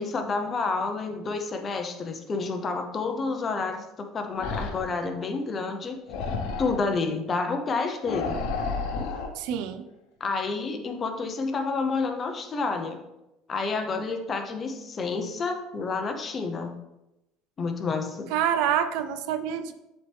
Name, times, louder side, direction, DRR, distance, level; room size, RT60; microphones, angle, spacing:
voice 1, 0.0-3.9 4.1-6.0 6.6-8.4 10.2-13.0 13.5-16.7 17.6-18.3, left 4 dB, 30° left, 5 dB, 0.8 m, -29 dB
sound 1, 4.3-5.0 6.1-6.9 8.0-9.3, left 4 dB, 70° left, 1.0 m, -31 dB
voice 2, 9.4-9.9 18.3-19.7, right 9 dB, 75° right, 10 dB, 0.5 m, -27 dB
7.7 x 4.3 x 3.5 m, 0.93 s
cardioid pair, 130°, 0 cm